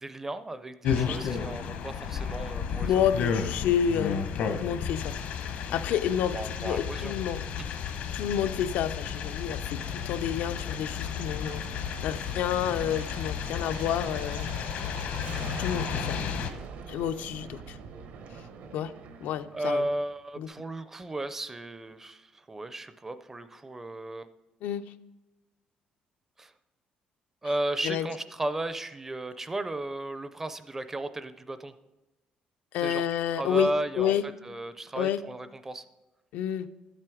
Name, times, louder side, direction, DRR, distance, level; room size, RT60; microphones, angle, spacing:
voice 1, 0.0-2.9 6.1-7.2 19.5-24.3 26.4-26.5 27.4-31.7 32.8-33.0 33.4-35.8, right 1 dB, 15° right, 12 dB, 0.4 m, -34 dB
sound 1, 0.8-16.5, left 7 dB, 65° left, 0.9 m, -33 dB
voice 2, 2.8-5.2 5.7-7.4 8.1-15.0 15.6-16.2 16.9-17.8 18.7-18.9 19.2-19.8 20.4-20.5 24.6-24.8 27.8-28.1 32.7-33.7 34.0-34.2 35.0-35.2 36.3-36.7, left 9 dB, 85° left, 10 dB, 0.5 m, -29 dB
Aircraft, 7.5-20.2, right 5 dB, 70° right, 0.9 m, -45 dB
12.5 x 7.6 x 4.9 m, 1.1 s
cardioid pair, 175°, 3 cm